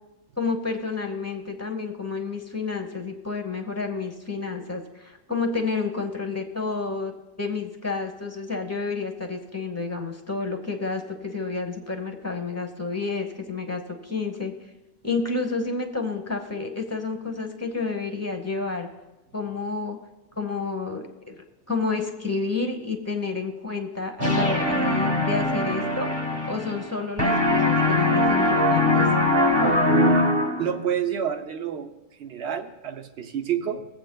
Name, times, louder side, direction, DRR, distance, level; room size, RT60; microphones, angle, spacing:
voice 1, 0.4-14.5 15.0-18.9 19.3-20.0 20.4-21.4 21.7-29.1, left 4 dB, 15° left, 4 dB, 0.8 m, -30 dB
sound 1, 24.2-26.9 27.2-30.8, left 1 dB, 25° right, 1.0 m, -21 dB
voice 2, 30.6-31.9 32.2-33.9, right 8 dB, 70° right, 6 dB, 1.0 m, -28 dB
21.5 x 7.7 x 2.2 m, 1.0 s
omnidirectional pair, 1.2 m